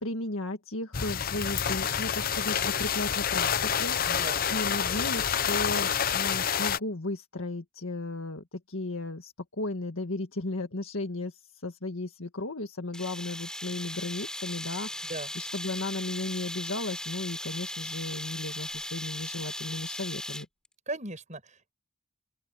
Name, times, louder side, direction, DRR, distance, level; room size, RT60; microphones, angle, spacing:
voice 1, 0.0-20.5, left 2 dB, 75° left, 1.8 m, -35 dB
sound 1, 0.9-6.8, left 8 dB, 45° left, 0.7 m, -28 dB
voice 2, 4.1-4.4 15.1-15.3 20.9-21.7, right 2 dB, 35° right, 7.5 m, -37 dB
sound 2, 12.9-20.7, left 1 dB, 5° left, 4.6 m, -38 dB
open air
head